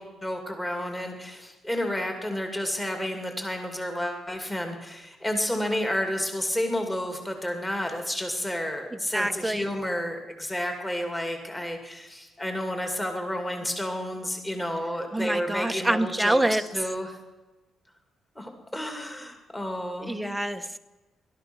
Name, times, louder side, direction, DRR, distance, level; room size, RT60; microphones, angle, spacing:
voice 1, 0.0-17.2 18.4-20.3, left 1 dB, 10° left, 4 dB, 2.4 m, -31 dB
voice 2, 8.9-9.6 15.1-16.6 20.0-20.8, right 1 dB, 5° right, 7 dB, 0.8 m, -26 dB
17.5 x 12.5 x 6.1 m, 1.1 s
cardioid pair, 125°, 0 cm